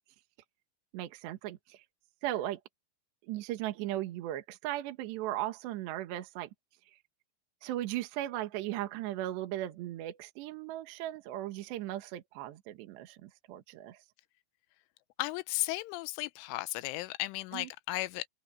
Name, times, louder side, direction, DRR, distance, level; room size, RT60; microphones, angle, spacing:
voice 1, 0.9-1.8 2.2-2.6 3.2-6.5 6.9-7.0 7.6-14.0 17.5-17.7, right 14 dB, 70° right, 3.4 m, -37 dB
voice 2, 15.2-18.3, left 20 dB, 90° left, 3.1 m, -35 dB
open air
omnidirectional pair, 5.6 m